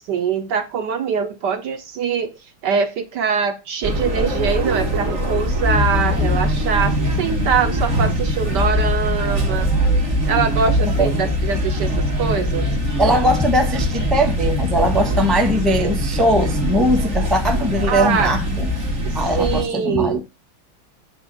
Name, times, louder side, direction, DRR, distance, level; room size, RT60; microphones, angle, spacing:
voice 1, 0.0-9.7 10.3-12.6 17.9-18.3 19.0-20.2, right 6 dB, 65° right, 1.2 m, -23 dB
sound 1, 3.8-19.6, equal, 35° right, 2.1 m, -21 dB
voice 2, 13.0-18.7 19.1-20.2, equal, ahead, 0.7 m, -20 dB
8.7 x 3.4 x 6.1 m
omnidirectional pair, 2.2 m